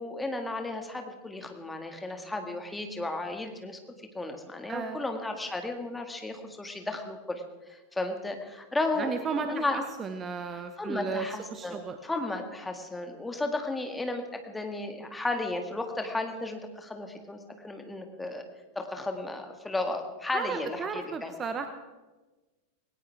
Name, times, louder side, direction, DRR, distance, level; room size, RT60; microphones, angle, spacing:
voice 1, 0.0-3.8 4.1-9.8 10.5-17.4 17.6-18.4 18.8-21.3, left 2 dB, 10° left, 5 dB, 2.0 m, -34 dB
voice 2, 4.7-5.0 9.0-11.3 11.5-12.0 20.3-21.7, right 5 dB, 25° right, 8 dB, 1.0 m, -34 dB
19.5 x 18.0 x 3.5 m, 1.2 s
figure-of-eight pair, 90°, 0 cm